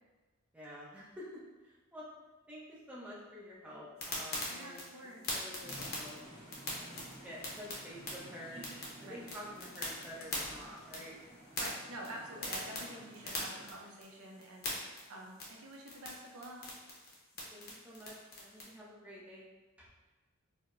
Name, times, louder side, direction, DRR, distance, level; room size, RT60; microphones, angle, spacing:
voice 1, 0.5-1.3 1.6-2.0 2.5-4.9 5.3-6.2 6.7-8.6 9.0-11.2 17.5-19.4 19.8-19.9, equal, 5° right, -7 dB, 0.6 m, -49 dB
sound 1, 4.0-18.6, left 1 dB, 45° left, 0.8 m, -43 dB
voice 2, 4.5-5.2 9.1-9.2 11.6-14.7 15.1-16.6, right 1 dB, 80° right, -1 dB, 0.6 m, -48 dB
sound 2, 5.6-11.2, left 3 dB, 65° left, 0.4 m, -58 dB
sound 3, 5.6-13.7, right 1 dB, 15° left, 1.3 m, -53 dB
4.6 x 2.0 x 2.5 m, 1.2 s
head